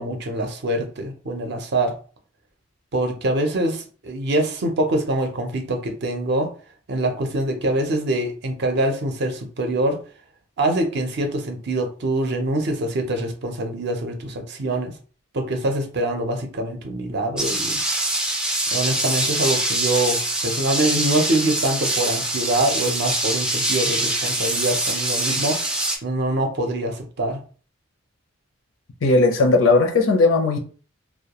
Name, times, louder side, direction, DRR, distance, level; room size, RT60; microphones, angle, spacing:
voice 1, 0.0-1.9 2.9-6.5 6.9-10.0 10.6-14.9 15.3-17.8 18.7-25.6 26.0-27.4, right 1 dB, 55° right, 0.5 m, -24 dB
sound 1, 17.4-26.0, right 1 dB, 5° right, 0.3 m, -24 dB
voice 2, 29.0-30.6, left 3 dB, 70° left, 0.5 m, -17 dB
2.2 x 2.2 x 2.9 m
head